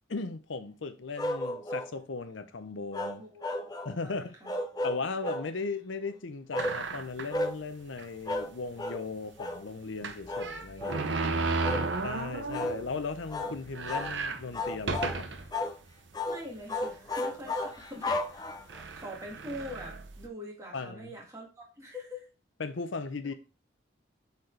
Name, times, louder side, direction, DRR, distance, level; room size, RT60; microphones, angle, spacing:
voice 1, 0.1-3.2 3.8-4.3 4.8-11.0 12.0-15.3 20.7-21.1 22.6-23.3, left 4 dB, 75° left, 0.7 m, -37 dB
sound 1, 1.2-1.9 2.9-4.0 4.4-5.5 6.5-6.8 7.3-7.6 8.3-8.5 8.8-9.0 9.4-9.6 10.3-10.5 10.8-11.1 11.6-11.9 12.5-12.8 13.3-13.6 13.9-14.1 14.5-15.2 15.5-15.8 16.1-16.4 16.7-18.8, left 2 dB, 20° left, 0.6 m, -33 dB
voice 2, 3.2-3.5 4.0-4.5 10.7-11.4 16.3-18.6 18.9-22.3, left 1 dB, 15° right, 2.0 m, -44 dB
sound 2, 6.6-7.4 8.0-8.1 8.4-8.5 10.0-12.9 13.3-13.4 13.7-15.5 16.1-16.2 17.1-17.4 18.2-18.3 18.7-20.3, right 3 dB, 70° right, 0.8 m, -34 dB
sound 3, 10.2-15.5, right 1 dB, 40° right, 2.5 m, -53 dB
8.0 x 4.2 x 3.3 m
head